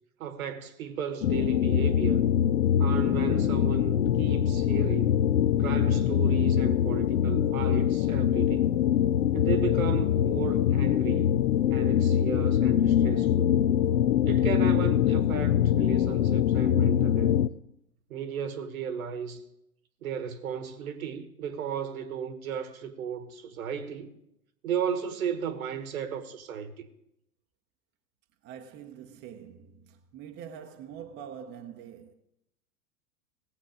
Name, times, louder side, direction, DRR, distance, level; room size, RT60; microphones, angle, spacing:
voice 1, 0.2-2.3 2.8-5.2 5.6-8.8 9.3-11.4 11.7-13.5 14.2-17.4 18.1-19.4 20.0-24.2 24.6-26.9, right 8 dB, 60° right, 1.4 m, -35 dB
sound 1, 1.2-17.5, left 10 dB, 60° left, 0.6 m, -24 dB
voice 2, 28.4-32.1, right 8 dB, 20° right, 0.8 m, -44 dB
17.5 x 7.6 x 5.0 m
figure-of-eight pair, 100°, 48 cm